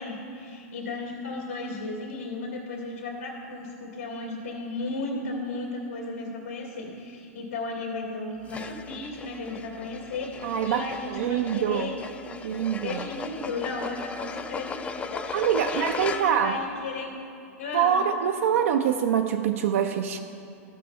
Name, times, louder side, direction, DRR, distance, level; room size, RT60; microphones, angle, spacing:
voice 1, 0.0-12.0 12.8-17.1 17.6-18.0, left 3 dB, 85° left, -5 dB, 2.4 m, -35 dB
sound 1, 8.5-16.6, left 5 dB, 15° left, 0.4 m, -37 dB
voice 2, 10.4-11.9 12.4-13.1 15.3-16.6 17.7-20.2, right 8 dB, 65° right, 5 dB, 0.4 m, -25 dB
15.5 x 6.0 x 3.2 m, 2.6 s
hypercardioid pair, 110°, 8 cm